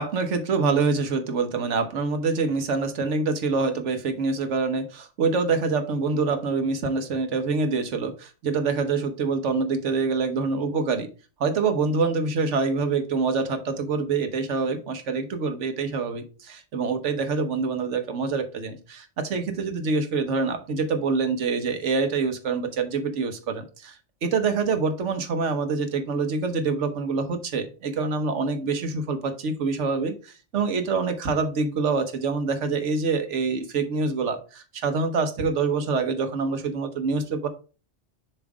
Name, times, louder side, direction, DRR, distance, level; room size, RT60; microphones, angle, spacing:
voice 1, 0.0-11.1 11.4-37.5, right 4 dB, 80° right, 8 dB, 1.3 m, -26 dB
7.1 x 3.1 x 4.8 m, 0.34 s
omnidirectional pair, 1.2 m